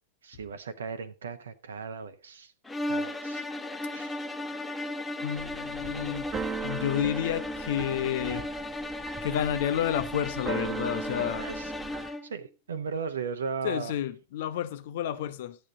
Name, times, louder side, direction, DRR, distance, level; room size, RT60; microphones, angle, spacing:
voice 1, 0.2-2.5 2.9-3.5 3.9-4.3 11.4-11.7 12.0-13.9, right 5 dB, 65° right, 0.8 m, -37 dB
sound 1, 2.6-12.3, left 1 dB, 10° left, 1.2 m, -35 dB
voice 2, 5.2-6.2 6.6-8.5 9.2-11.5 13.6-15.6, left 11 dB, 55° left, 0.9 m, -30 dB
Keyboard (musical), 5.4-12.1, right 5 dB, 25° right, 1.0 m, -38 dB
12.5 x 8.7 x 3.9 m
figure-of-eight pair, 90°, 0 cm